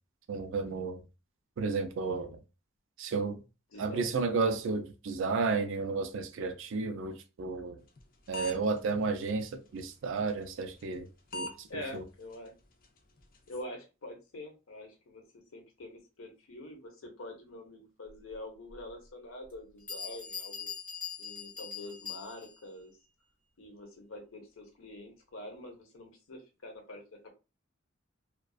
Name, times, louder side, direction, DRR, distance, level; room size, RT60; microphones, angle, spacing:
voice 1, 0.3-1.0 1.6-2.4 3.0-3.4 3.8-7.8 8.3-11.1 11.3-12.0, right 4 dB, 65° right, 0.4 m, -32 dB
voice 2, 3.7-4.1 11.7-12.5 13.5-20.7 21.2-23.0 23.6-27.0, left 1 dB, 85° left, 0.8 m, -45 dB
sound 1, 8.0-8.1 8.3-8.8 9.3-9.4 10.8-11.0 11.3-11.5 11.8-11.9 12.3-12.4 12.8-12.9 13.2-13.6, left 1 dB, 45° left, 0.5 m, -38 dB
Bell, 18.7-18.8 19.5-19.6 19.9-22.7, left 6 dB, 10° left, 1.0 m, -42 dB
2.4 x 2.2 x 2.3 m
head